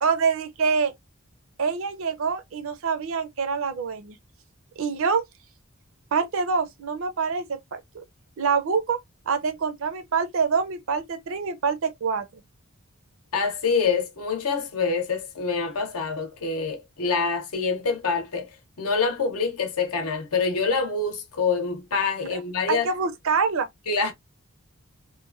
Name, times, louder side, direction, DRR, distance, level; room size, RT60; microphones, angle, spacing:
voice 1, 0.0-0.9 1.6-4.2 4.8-5.2 6.1-8.0 8.4-9.0 9.3-12.3 22.3-22.4 22.7-23.7, right 5 dB, 60° right, 0.5 m, -25 dB
voice 2, 13.3-18.5 18.8-22.9 23.9-24.1, left 5 dB, 75° left, 0.7 m, -26 dB
2.9 x 2.1 x 2.4 m
head